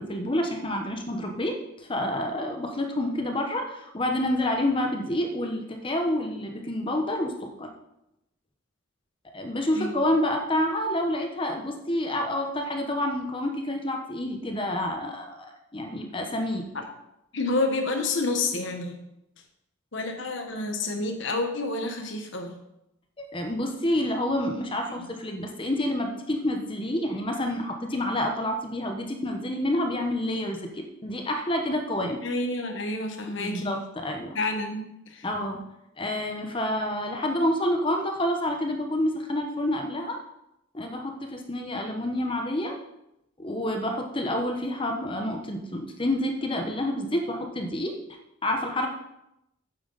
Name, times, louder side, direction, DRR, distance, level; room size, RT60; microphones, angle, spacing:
voice 1, 0.0-7.7 9.3-16.7 23.3-32.2 33.4-34.4 35.2-35.6 36.0-40.2 40.7-42.8 43.4-48.0 48.4-48.9, left 1 dB, 25° left, 4 dB, 1.0 m, -28 dB
voice 2, 17.3-19.0 19.9-22.6 24.9-25.1 32.2-33.8 34.3-35.3, left 2 dB, 60° left, 4 dB, 1.3 m, -29 dB
8.8 x 7.8 x 4.0 m, 0.85 s
head